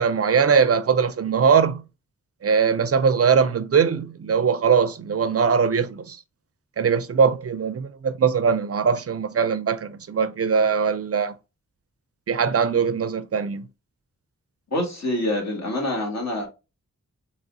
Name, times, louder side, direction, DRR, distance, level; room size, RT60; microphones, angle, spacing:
voice 1, 0.0-1.8 2.4-6.2 6.8-11.3 12.3-13.7, right 6 dB, 50° right, 0.4 m, -21 dB
voice 2, 14.7-16.5, left 1 dB, 60° left, 1.9 m, -26 dB
4.0 x 2.9 x 2.6 m
wide cardioid pair, 65°, 31 cm